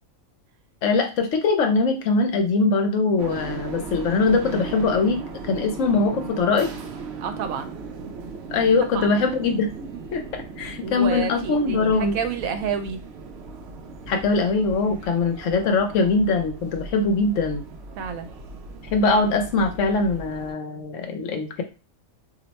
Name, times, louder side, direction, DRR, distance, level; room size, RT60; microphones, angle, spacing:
voice 1, 0.8-6.7 8.5-9.7 10.1-12.1 14.1-17.6 18.9-21.6, left 3 dB, 70° left, 5 dB, 1.0 m, -22 dB
sound 1, 3.2-20.5, right 4 dB, 65° right, 0.7 m, -38 dB
voice 2, 7.2-7.7 8.9-9.1 9.7-9.8 10.8-13.0 18.0-18.3, right 7 dB, 85° right, 8 dB, 1.0 m, -29 dB
2.7 x 2.1 x 4.0 m, 0.31 s
omnidirectional pair, 1.4 m